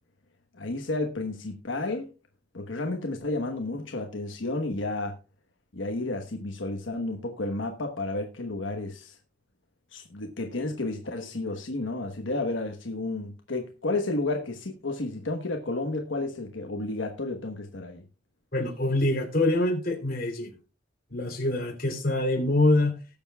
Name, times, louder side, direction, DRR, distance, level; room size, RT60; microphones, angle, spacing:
voice 1, 0.5-2.1 2.5-5.2 5.7-9.2 9.9-18.0, left 2 dB, 85° left, 1.2 m, -31 dB
voice 2, 18.5-20.6 21.1-23.0, left 2 dB, 50° left, 3.3 m, -25 dB
19.5 x 7.1 x 2.3 m
head